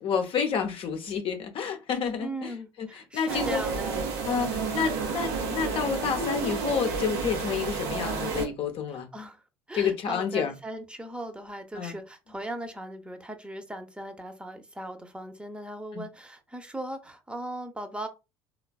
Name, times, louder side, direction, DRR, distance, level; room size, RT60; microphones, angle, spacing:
voice 1, 0.0-2.5 2.8-3.6 4.2-9.1 9.7-10.5 11.7-12.0 15.9-16.0, left 7 dB, 45° left, 0.6 m, -29 dB
voice 2, 2.2-4.1 8.9-9.4 9.7-18.1, right 1 dB, 10° right, 0.7 m, -38 dB
sound 1, 3.3-8.5, right 4 dB, 70° right, 0.7 m, -31 dB
3.2 x 2.3 x 2.3 m
hypercardioid pair, 60°, 12 cm